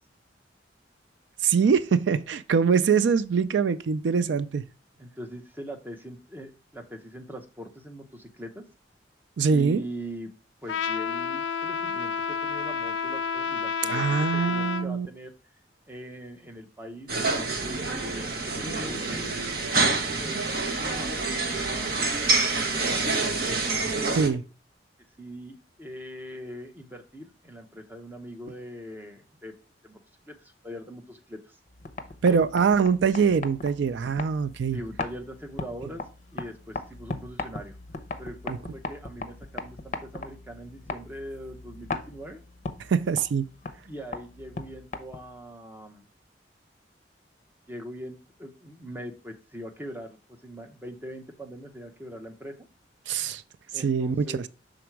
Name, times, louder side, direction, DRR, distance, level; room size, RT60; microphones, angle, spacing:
voice 1, 1.4-4.6 9.4-9.8 13.9-15.1 24.1-24.4 32.2-34.8 38.5-38.6 42.9-43.4 53.1-53.4 53.8-54.4, right 6 dB, 75° right, 0.4 m, -23 dB
voice 2, 5.0-8.6 9.5-10.3 10.6-15.3 15.9-19.3 19.8-23.5 25.2-29.5 29.8-30.0 30.3-31.6 32.3-32.5 34.7-36.0 36.3-37.8 38.2-42.4 43.8-46.1 47.7-52.7 53.7-54.5, equal, 10° right, 0.7 m, -41 dB
Trumpet, 10.7-14.9, left 6 dB, 85° left, 0.4 m, -30 dB
sound 1, 17.1-24.3, right 3 dB, 55° right, 1.0 m, -27 dB
sound 2, 31.7-45.4, left 3 dB, 40° left, 0.6 m, -39 dB
6.1 x 3.8 x 4.5 m
head